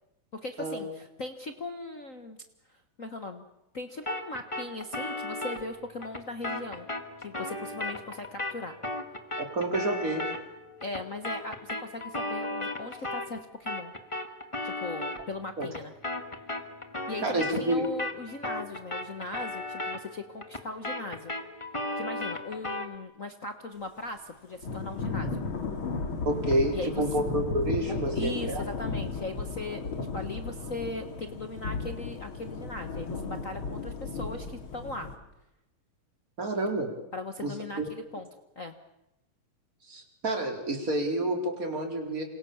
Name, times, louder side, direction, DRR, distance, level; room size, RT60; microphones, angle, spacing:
voice 1, 0.3-2.4 3.0-3.5 3.7-6.9 7.2-8.7 10.8-13.9 14.6-15.9 17.1-21.3 22.0-25.4 26.7-27.0 27.9-35.1 37.1-38.3 38.5-38.7, left 2 dB, 80° left, 7 dB, 0.7 m, -38 dB
sound 1, 4.1-13.4 13.7-23.0, left 2 dB, 20° left, 0.8 m, -36 dB
voice 2, 9.4-10.2 15.6-15.7 17.2-17.8 26.2-28.6 36.4-36.9 37.4-37.9 39.9-42.2, right 1 dB, 25° right, 3 dB, 4.4 m, -29 dB
Thunder / Rain, 24.6-35.2, left 4 dB, 40° left, 2.9 m, -35 dB
28.5 x 27.0 x 7.2 m, 0.90 s
omnidirectional pair, 3.8 m